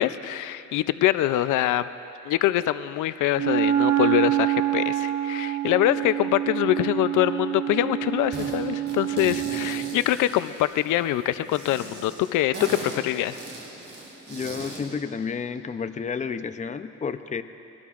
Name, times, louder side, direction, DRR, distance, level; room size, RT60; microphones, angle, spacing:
voice 1, 0.0-1.9 2.3-13.4, left 13 dB, 80° left, 13 dB, 0.5 m, -24 dB
Wind instrument woodwind instrument, 3.3-10.0, right 12 dB, 60° right, 0.9 m, -26 dB
sound 1, 8.3-8.6 8.9-11.0 11.5-14.9, right 2 dB, 40° right, 3.6 m, -38 dB
voice 2, 14.3-17.4, left 6 dB, 25° left, 10 dB, 0.5 m, -31 dB
23.5 x 18.5 x 2.4 m, 2.8 s
cardioid pair, 90°, 30 cm